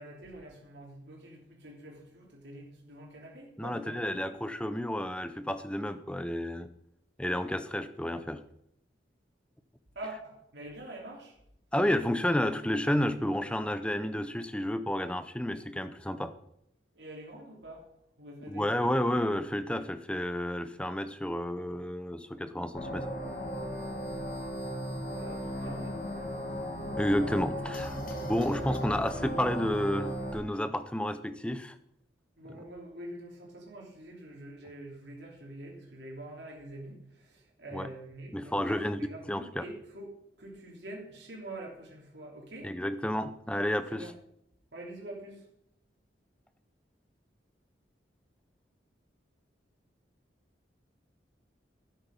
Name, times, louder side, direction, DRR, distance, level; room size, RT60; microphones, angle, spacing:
voice 1, 0.0-4.2 9.9-11.4 16.9-17.9 18.2-19.0 25.1-26.2 28.7-29.0 32.4-42.7 43.9-44.1 44.7-45.4, right 1 dB, 70° right, -2 dB, 3.3 m, -46 dB
voice 2, 3.6-6.7 7.2-8.4 11.7-16.3 18.5-23.1 26.9-31.7 32.5-32.6 37.7-37.9 38.3-39.0 39.3-39.6 42.6-44.1, left 1 dB, 5° left, 11 dB, 0.6 m, -31 dB
sound 1, 22.7-30.3, equal, 50° left, 2.6 m, -36 dB
12.0 x 9.1 x 5.3 m, 0.74 s
head